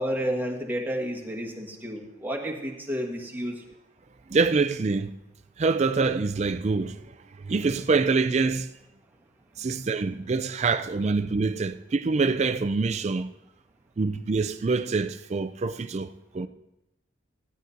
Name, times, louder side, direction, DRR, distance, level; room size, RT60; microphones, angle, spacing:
voice 1, 0.0-3.6, equal, 10° right, 1.3 m, -31 dB
voice 2, 4.3-5.1 5.6-7.0 7.4-8.7 9.6-13.3 14.0-16.5, right 4 dB, 35° right, 0.3 m, -25 dB
15.5 x 11.5 x 2.6 m
head